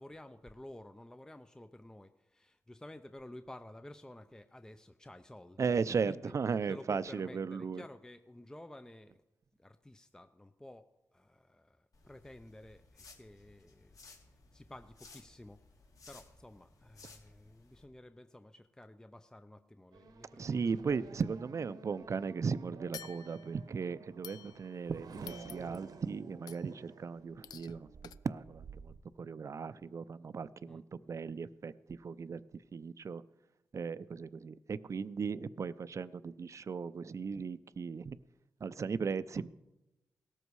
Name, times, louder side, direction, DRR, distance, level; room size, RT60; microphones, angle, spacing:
voice 1, 0.0-6.3 6.7-9.2 9.6-14.2 14.5-15.6 16.1-20.7 30.7-30.8, left 1 dB, 10° left, 9 dB, 0.7 m, -52 dB
voice 2, 5.6-7.8 20.4-27.9 28.2-32.4 32.7-33.2 33.7-38.2 38.6-39.5, right 5 dB, 50° right, 15 dB, 0.6 m, -37 dB
sound 1, 11.9-17.8, left 3 dB, 60° left, 3.0 m, -59 dB
Race car auto racing / Accelerating revving vroom, 19.9-29.0, right 5 dB, 70° right, 1.1 m, -53 dB
sound 2, 22.9-23.7 24.2-24.9 25.3-25.9 26.5-26.8 27.4-27.8 28.0-28.1, left 9 dB, 90° left, 0.5 m, -50 dB
18.0 x 13.5 x 4.8 m, 0.99 s
cardioid pair, 75°, 7 cm